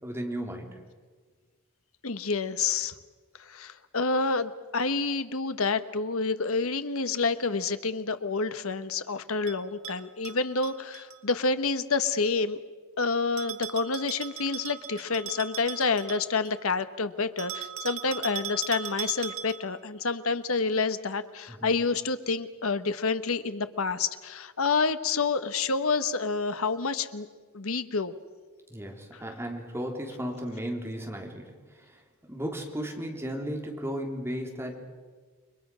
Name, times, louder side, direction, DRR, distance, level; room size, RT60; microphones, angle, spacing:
voice 1, 0.0-0.8 21.5-21.7 28.7-32.0 32.3-34.8, equal, 10° right, 1 dB, 3.6 m, -35 dB
voice 2, 2.0-2.9 3.4-12.6 13.0-27.3 27.5-28.1, left 4 dB, 70° left, 11 dB, 1.2 m, -28 dB
Bell, 9.5-11.2 13.4-16.6 17.4-19.8, right 9 dB, 75° right, 2.1 m, -39 dB
29.5 x 22.5 x 6.3 m, 1.5 s
head